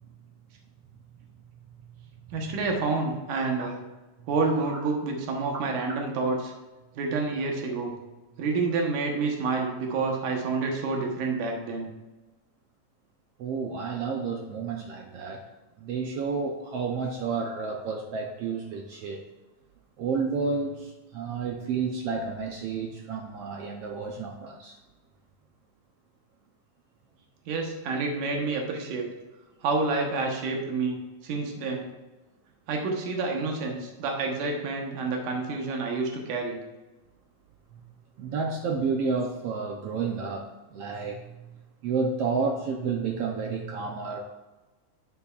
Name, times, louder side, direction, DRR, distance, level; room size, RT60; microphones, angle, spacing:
voice 1, 2.3-3.8 4.3-6.5 7.0-7.9 8.4-11.9 27.5-29.1 29.6-31.9 32.7-36.6, right 3 dB, 90° right, 2.7 m, -28 dB
voice 2, 13.4-15.4 15.8-19.2 20.0-24.8 37.7-37.8 38.2-41.6 41.8-44.2, right 4 dB, 75° right, 1.4 m, -31 dB
11.5 x 8.1 x 2.4 m
omnidirectional pair, 3.5 m